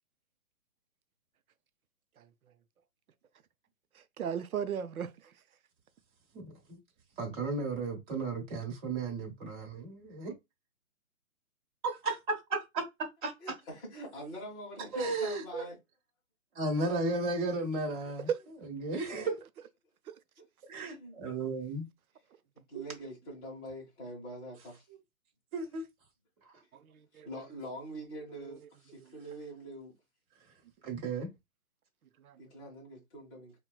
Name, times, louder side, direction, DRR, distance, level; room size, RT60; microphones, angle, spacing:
voice 1, 4.2-5.1 18.3-18.4 20.1-20.2 26.7-27.3 28.4-28.6 32.2-32.4, right 8 dB, 85° right, 0.6 m, -35 dB
voice 2, 6.3-6.8 7.2-10.3 11.8-13.5 14.9-15.7 16.5-18.3 18.6-19.3 20.7-21.9 22.7-22.8 24.9-25.0 25.5-25.9 26.4-26.5 30.8-31.3, right 3 dB, 35° right, 1.1 m, -34 dB
voice 3, 13.4-15.8 19.2-19.4 20.8-21.2 22.7-24.8 27.2-29.9 32.4-33.5, right 1 dB, 10° left, 0.6 m, -44 dB
4.2 x 2.2 x 2.3 m
hypercardioid pair, 150°, 42 cm